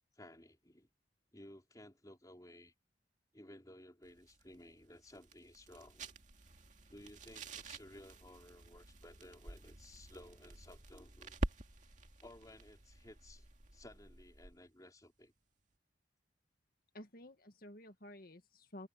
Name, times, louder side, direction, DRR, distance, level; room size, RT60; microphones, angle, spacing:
voice 1, 0.1-0.9 1.3-2.7 3.3-6.1 6.9-11.4 12.2-15.3, left 1 dB, 20° left, 4.0 m, -57 dB
sound 1, 4.0-14.7, right 1 dB, 45° right, 2.3 m, -48 dB
voice 2, 16.9-18.9, left 1 dB, 55° left, 1.8 m, -52 dB
head